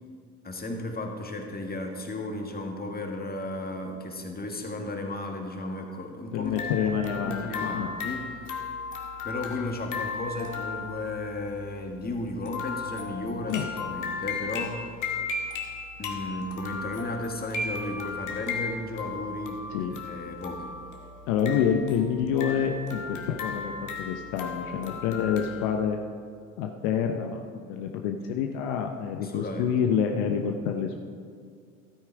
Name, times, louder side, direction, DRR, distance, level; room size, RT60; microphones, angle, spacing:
voice 1, 0.4-6.6 6.9-8.3 9.2-14.8 16.0-20.7 29.2-29.7, left 2 dB, 20° left, 3 dB, 1.8 m, -34 dB
voice 2, 6.3-7.9 13.5-13.7 19.7-19.9 21.3-26.0 26.6-31.0, left 7 dB, 65° left, 4 dB, 0.9 m, -27 dB
sound 1, 6.4-25.8, left 4 dB, 45° left, 1.8 m, -36 dB
13.0 x 8.9 x 4.7 m, 2.2 s
hypercardioid pair, 60°, 41 cm